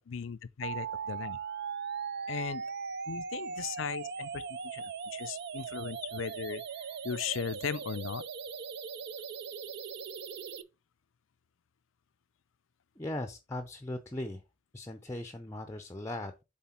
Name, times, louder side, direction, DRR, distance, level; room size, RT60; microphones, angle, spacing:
voice 1, 0.0-1.4 2.3-2.6 3.1-6.6 6.9-8.2, left 6 dB, 75° left, 0.5 m, -37 dB
sound 1, 0.6-10.6, right 6 dB, 55° right, 0.5 m, -39 dB
voice 2, 13.0-14.4 14.7-16.4, left 1 dB, 15° left, 0.6 m, -38 dB
7.5 x 3.9 x 4.3 m
head